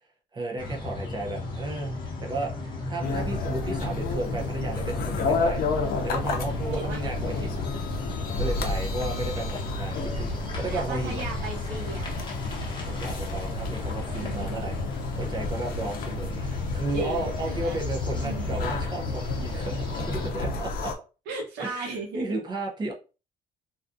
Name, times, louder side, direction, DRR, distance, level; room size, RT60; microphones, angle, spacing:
voice 1, 0.3-7.6 8.4-11.2 12.8-14.8 15.2-20.9 21.6-22.9, right 2 dB, 25° right, 0.6 m, -34 dB
sound 1, 0.6-20.3, left 2 dB, 30° left, 0.9 m, -35 dB
sound 2, 3.0-20.9, left 3 dB, 60° left, 0.5 m, -31 dB
voice 2, 3.0-3.5 6.8-7.0 8.4-9.4 10.7-12.1 14.1-15.0 16.9-17.8 18.2-18.6 21.3-22.3, right 3 dB, 80° right, 0.8 m, -37 dB
2.3 x 2.3 x 2.5 m
cardioid pair, 110°, 17 cm